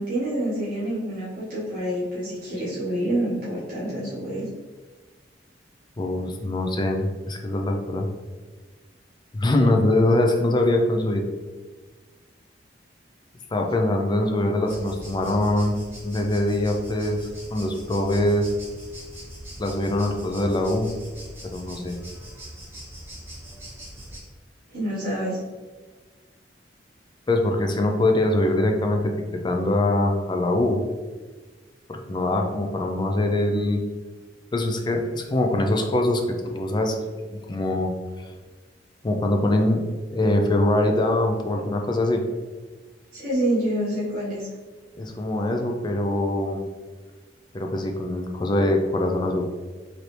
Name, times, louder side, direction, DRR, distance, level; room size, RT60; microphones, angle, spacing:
voice 1, 0.0-4.5 24.7-25.4 43.1-44.5, right 1 dB, 50° right, -9 dB, 1.4 m, -27 dB
voice 2, 6.0-8.1 9.3-11.2 13.5-15.8 16.0-18.5 19.6-20.9 21.4-22.0 27.3-30.8 31.9-33.8 34.5-37.0 37.5-37.9 38.2-38.3 39.0-39.8 40.1-42.2 45.0-46.6 47.5-49.5, left 1 dB, 25° left, 3 dB, 0.4 m, -23 dB
sound 1, 14.7-24.2, right 1 dB, 15° right, 1.4 m, -41 dB
4.4 x 2.7 x 3.2 m, 1.4 s
head